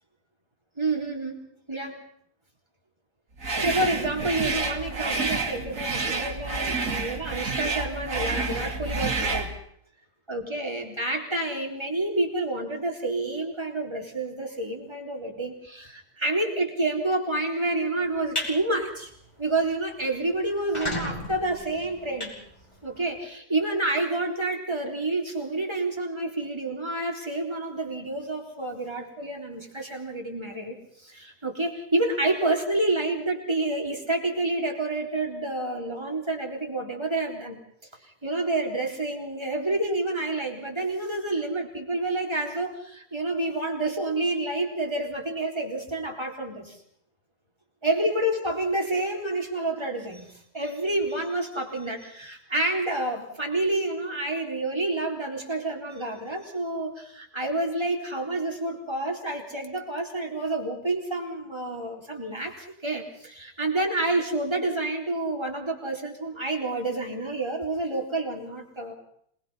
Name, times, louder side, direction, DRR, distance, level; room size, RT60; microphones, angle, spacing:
voice 1, 0.8-1.4 1.7-2.0 3.6-9.5 10.3-19.1 19.4-22.4 22.8-37.6 38.0-46.8 47.8-69.0, right 2 dB, 15° right, 1 dB, 3.8 m, -29 dB
sound 1, 3.4-9.5, right 3 dB, 55° right, 2.7 m, -29 dB
sound 2, 18.1-18.5 19.0-19.2 19.6-19.7 19.9-20.0 20.5-23.1, left 1 dB, 20° left, 5.0 m, -34 dB
26.5 x 21.0 x 5.7 m, 0.66 s
omnidirectional pair, 1.6 m